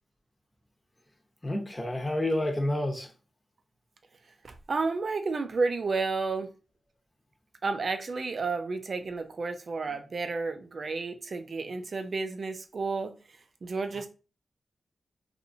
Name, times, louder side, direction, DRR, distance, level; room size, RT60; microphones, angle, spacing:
voice 1, 1.4-3.1, left 1 dB, 25° left, 0.9 m, -29 dB
voice 2, 4.4-6.5 7.6-13.1 13.6-14.1, right 4 dB, 60° right, 0.4 m, -31 dB
2.8 x 2.5 x 2.6 m
supercardioid pair, 40°, 0 cm